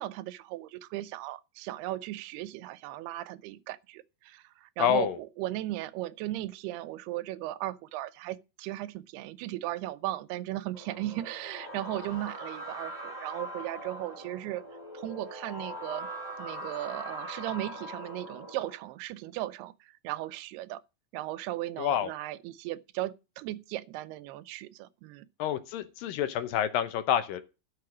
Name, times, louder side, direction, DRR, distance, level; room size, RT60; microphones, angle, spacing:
voice 1, 0.0-14.6 14.9-16.1 16.4-20.8 21.1-25.3, right 15 dB, 90° right, 2.7 m, -37 dB
voice 2, 4.8-5.2 21.8-22.1 25.4-27.4, left 10 dB, 75° left, 2.4 m, -28 dB
sound 1, 10.7-18.8, right 1 dB, 10° left, 3.5 m, -41 dB
12.5 x 6.6 x 6.1 m
omnidirectional pair, 4.5 m